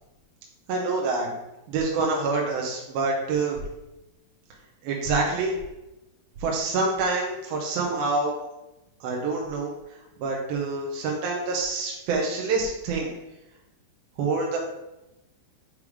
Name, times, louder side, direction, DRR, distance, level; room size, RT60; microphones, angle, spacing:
voice 1, 0.7-1.3 1.7-3.6 4.8-5.5 6.4-8.4 9.0-9.7 10.2-13.1 14.2-14.6, right 3 dB, 80° right, -1 dB, 2.8 m, -26 dB
8.5 x 3.4 x 4.8 m, 0.94 s
omnidirectional pair, 4.4 m